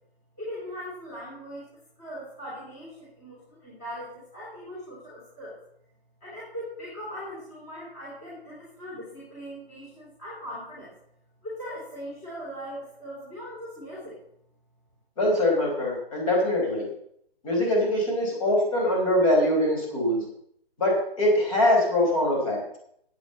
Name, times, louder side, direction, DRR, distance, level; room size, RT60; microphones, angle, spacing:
voice 1, 0.4-1.7 2.0-5.6 6.2-10.9 11.4-14.2, equal, 15° left, -8 dB, 3.4 m, -40 dB
voice 2, 15.2-16.9 17.4-20.2 20.8-22.6, left 1 dB, 35° left, -1 dB, 4.9 m, -23 dB
8.7 x 7.9 x 8.2 m, 0.72 s
hypercardioid pair, 170°, 31 cm